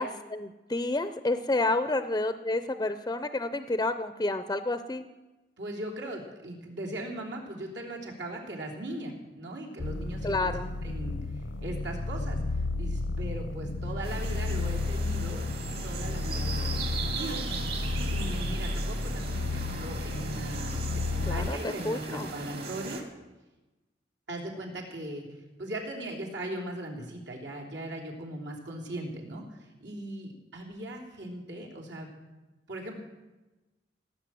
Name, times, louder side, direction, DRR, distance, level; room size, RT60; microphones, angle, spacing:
voice 1, 0.0-5.0 10.2-10.7 21.3-22.3, left 2 dB, 20° left, 10 dB, 0.5 m, -30 dB
voice 2, 5.6-10.5 10.8-11.2 11.6-12.4 12.8-17.4 18.1-20.8 21.1-23.0 24.3-25.2 25.6-32.1 32.7-33.0, right 1 dB, 85° right, -1 dB, 3.4 m, -39 dB
sound 1, 9.8-21.5, left 2 dB, 80° left, 0.8 m, -32 dB
sound 2, 14.0-23.0, right 4 dB, 60° right, 2.7 m, -38 dB
18.0 x 8.7 x 7.7 m, 1.1 s
head